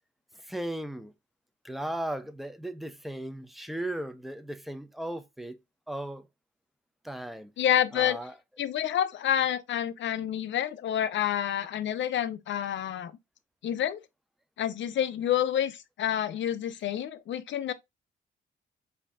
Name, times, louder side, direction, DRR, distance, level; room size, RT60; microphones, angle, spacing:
voice 1, 0.4-1.1 1.6-5.6 5.9-6.3 7.0-7.5 7.9-8.3, right 1 dB, ahead, 0.5 m, -36 dB
voice 2, 7.6-8.2 8.6-13.1 13.6-14.0 14.6-17.7, left 10 dB, 65° left, 0.6 m, -28 dB
4.9 x 2.7 x 3.5 m
cardioid pair, 120°, 20 cm